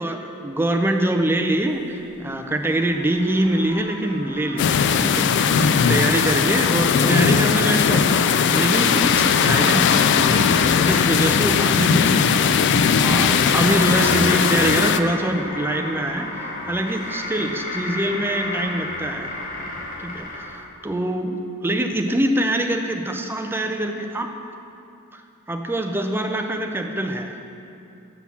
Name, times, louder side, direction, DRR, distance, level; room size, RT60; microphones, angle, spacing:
voice 1, 0.0-12.6 13.0-19.3 20.0-24.3 25.1-25.2 25.5-27.4, right 1 dB, 10° right, 4 dB, 0.4 m, -24 dB
sound 1, 1.6-20.6, left 2 dB, 40° left, 0.9 m, -35 dB
sound 2, 4.6-15.0, left 6 dB, 55° left, 0.3 m, -18 dB
6.0 x 6.0 x 7.0 m, 2.7 s
head